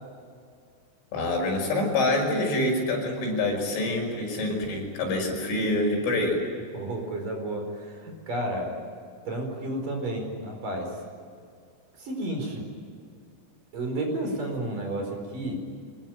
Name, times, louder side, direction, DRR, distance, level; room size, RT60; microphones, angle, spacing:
voice 1, 1.1-6.4, left 2 dB, 80° left, 1 dB, 7.9 m, -26 dB
voice 2, 6.7-8.7 9.3-10.9 12.0-12.6 13.7-15.6, right 1 dB, 45° right, 2 dB, 6.1 m, -31 dB
25.0 x 21.0 x 9.2 m, 2.2 s
omnidirectional pair, 5.5 m